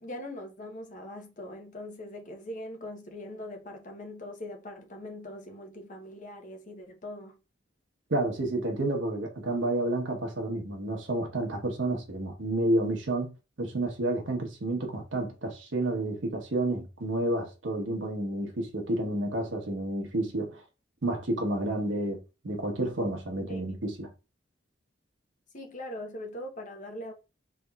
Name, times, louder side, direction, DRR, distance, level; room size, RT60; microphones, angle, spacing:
voice 1, 0.0-7.4 23.5-23.6 25.5-27.1, left 1 dB, 45° left, 0.9 m, -41 dB
voice 2, 8.1-13.3 13.6-20.6 21.0-24.1, right 1 dB, 90° right, 1.1 m, -30 dB
4.0 x 3.4 x 2.3 m
head